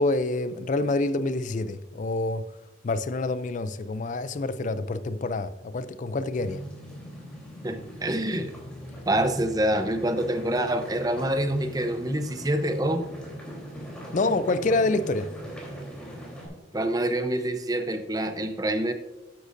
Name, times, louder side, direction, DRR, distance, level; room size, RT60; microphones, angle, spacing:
voice 1, 0.0-2.4 2.8-6.6 14.1-15.3, left 2 dB, 40° left, 14 dB, 0.4 m, -27 dB
sound 1, 6.3-16.5, equal, 5° left, 3.4 m, -41 dB
voice 2, 7.6-8.5 9.1-13.1 16.7-18.9, right 1 dB, 20° right, 8 dB, 0.7 m, -26 dB
12.5 x 10.0 x 2.6 m, 1.1 s
head